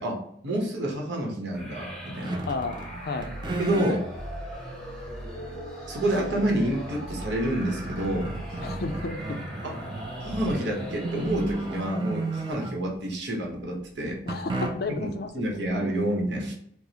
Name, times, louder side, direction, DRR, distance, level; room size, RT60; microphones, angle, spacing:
voice 1, 0.0-2.3 3.6-4.0 5.9-8.3 9.6-9.8 10.2-14.2 15.0-15.1 15.3-16.5, right 1 dB, 75° right, 0 dB, 1.0 m, -28 dB
sound 1, 1.5-12.1, equal, ahead, 0.8 m, -39 dB
sound 2, 2.2-2.9 3.2-4.0 4.7-4.8 6.9-7.0 7.3-13.0 14.3-15.1, right 2 dB, 25° right, 0.4 m, -33 dB
voice 2, 2.5-3.4 8.6-9.5 14.3-15.5, left 3 dB, 55° left, 7 dB, 0.4 m, -33 dB
4.7 x 2.0 x 2.8 m, 0.70 s
head